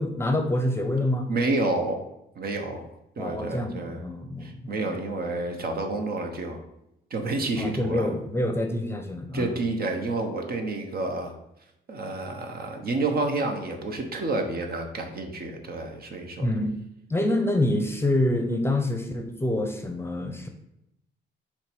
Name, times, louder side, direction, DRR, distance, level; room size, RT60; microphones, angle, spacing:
voice 1, 0.0-1.3 3.2-5.0 7.6-9.6 16.4-16.8 17.1-20.5, left 1 dB, 10° left, 5 dB, 0.8 m, -27 dB
voice 2, 1.3-2.0 2.4-2.9 3.2-4.1 4.4-6.6 7.1-8.1 9.3-11.3 11.9-16.5, right 2 dB, 50° right, 4 dB, 1.1 m, -29 dB
5.7 x 3.4 x 5.2 m, 0.83 s
cardioid pair, 90°, 20 cm